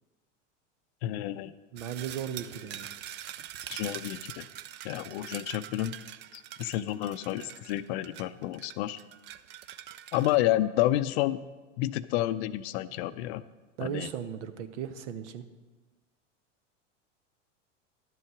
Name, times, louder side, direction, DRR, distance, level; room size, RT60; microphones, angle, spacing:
voice 1, 1.0-1.5 3.7-4.5 4.8-6.0 6.3-9.0 10.1-11.4 11.8-13.4 13.8-14.1, left 14 dB, 55° left, 15 dB, 0.5 m, -30 dB
voice 2, 1.7-2.9 13.8-15.5, right 9 dB, 65° right, 11 dB, 0.9 m, -36 dB
sound 1, 1.8-10.4, right 12 dB, 30° right, 0.4 m, -44 dB
11.0 x 7.8 x 4.8 m, 1.3 s
hypercardioid pair, 95°, 38 cm